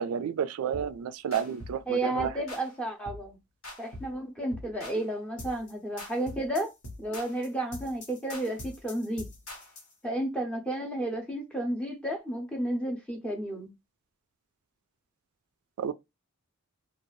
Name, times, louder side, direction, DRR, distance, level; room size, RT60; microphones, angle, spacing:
voice 1, 0.0-2.3 15.8-15.9, right 8 dB, 70° right, 0.3 m, -31 dB
sound 1, 0.7-1.0 1.3-1.8 2.2-2.7 3.1-3.3 3.6-4.2 4.5-5.0 5.4-5.7 6.0-9.9, left 1 dB, 65° left, 1.1 m, -43 dB
voice 2, 1.9-3.4 3.8-6.7 7.0-9.3 10.0-13.7, right 1 dB, 5° left, 0.6 m, -32 dB
2.6 x 2.3 x 3.1 m
head